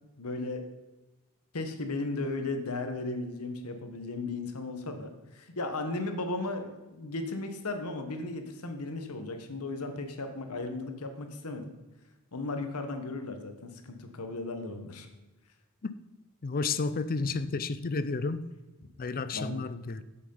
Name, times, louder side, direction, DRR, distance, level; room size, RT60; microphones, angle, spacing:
voice 1, 0.2-0.6 1.5-11.7 12.3-15.1 19.3-19.6, left 2 dB, 85° left, 1.2 m, -36 dB
voice 2, 16.4-18.5 19.0-20.0, left 4 dB, 40° left, 0.5 m, -31 dB
8.2 x 7.8 x 5.5 m
head